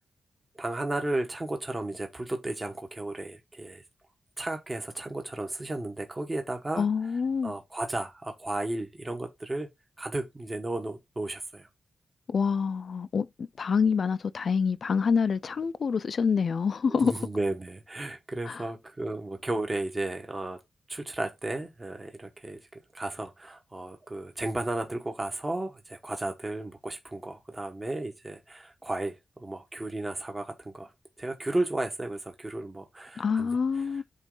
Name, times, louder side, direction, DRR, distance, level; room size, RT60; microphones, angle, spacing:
voice 1, 0.5-3.8 4.4-6.9 7.4-9.7 10.0-11.7 16.9-20.6 20.9-22.6 22.9-30.9 31.2-34.0, right 2 dB, 25° right, 1.1 m, -34 dB
voice 2, 6.8-7.5 12.3-17.1 18.5-18.6 33.2-34.0, left 5 dB, 60° left, 0.4 m, -26 dB
8.1 x 3.1 x 3.8 m
wide cardioid pair, 105°, 0 cm